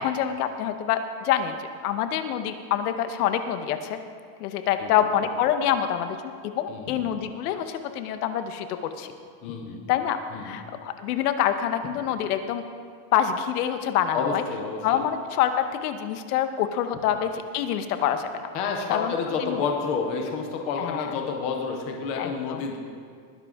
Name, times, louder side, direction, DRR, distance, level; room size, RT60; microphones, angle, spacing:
voice 1, 0.0-4.0 4.4-9.1 9.9-12.6 13.1-14.4 14.8-18.5 18.9-19.1 19.4-19.6 20.8-21.1 22.2-22.6, left 9 dB, 70° left, 8 dB, 1.1 m, -26 dB
voice 2, 6.7-7.2 9.4-9.8 10.3-10.6 14.1-15.1 18.5-22.8, left 5 dB, 15° left, 2 dB, 0.3 m, -29 dB
20.0 x 10.5 x 3.6 m, 2.1 s
supercardioid pair, 170°, 47 cm